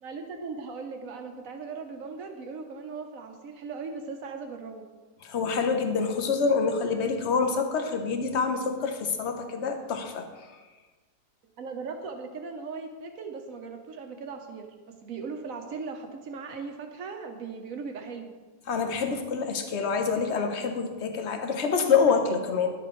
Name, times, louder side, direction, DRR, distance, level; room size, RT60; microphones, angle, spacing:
voice 1, 0.0-4.9 11.6-14.7 15.0-18.3, right 4 dB, 60° right, 5 dB, 1.3 m, -38 dB
voice 2, 5.2-10.3 18.7-22.7, left 5 dB, 50° left, 5 dB, 1.1 m, -26 dB
11.0 x 7.8 x 3.1 m, 1.3 s
omnidirectional pair, 1.7 m